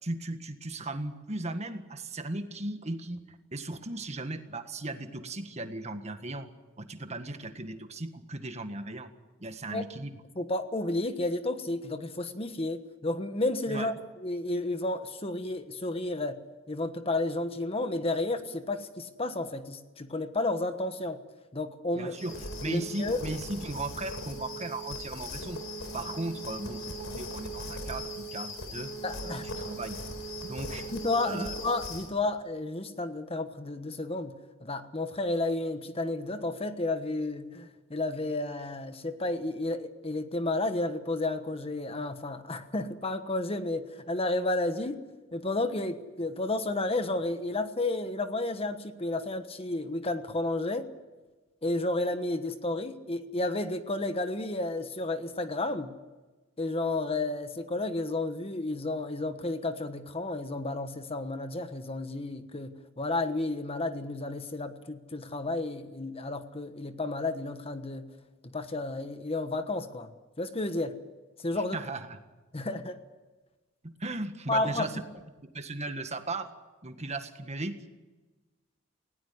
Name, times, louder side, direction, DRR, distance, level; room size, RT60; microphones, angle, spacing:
voice 1, 0.0-6.5 6.8-9.1 9.4-10.1 13.7-13.9 21.9-25.6 25.9-28.9 29.2-30.0 30.4-30.9 31.2-31.5 71.5-72.2 72.5-72.6 73.8-75.0 75.4-76.5 76.8-77.8, right 2 dB, 35° right, 8 dB, 1.6 m, -37 dB
voice 2, 10.4-13.9 14.2-16.4 16.7-21.2 21.5-22.1 22.7-23.2 29.0-29.4 30.9-34.4 34.6-45.0 45.3-50.9 51.6-55.9 56.6-68.1 68.4-70.1 70.4-71.0 71.4-71.8 72.5-73.0 74.5-74.9, left 2 dB, 30° left, 9 dB, 1.3 m, -32 dB
sound 1, 22.1-32.1, equal, 80° left, 4.2 m, -39 dB
19.5 x 17.5 x 9.7 m, 1.2 s
head